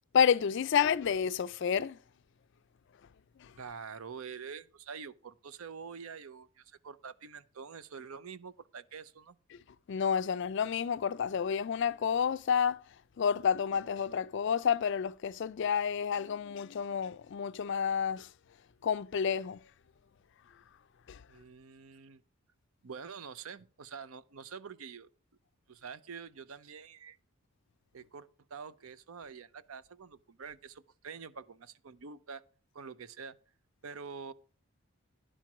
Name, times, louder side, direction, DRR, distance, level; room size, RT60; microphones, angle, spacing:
voice 1, 0.1-2.0 3.4-3.5 9.9-12.8 13.2-18.3 18.8-19.6 21.1-21.2, left 7 dB, 55° left, 0.3 m, -30 dB
voice 2, 3.6-9.4 21.3-22.2 22.8-25.1 25.7-27.2 27.9-32.4 32.7-33.4 33.8-34.3, right 6 dB, 75° right, 0.6 m, -46 dB
11.0 x 4.5 x 5.9 m
head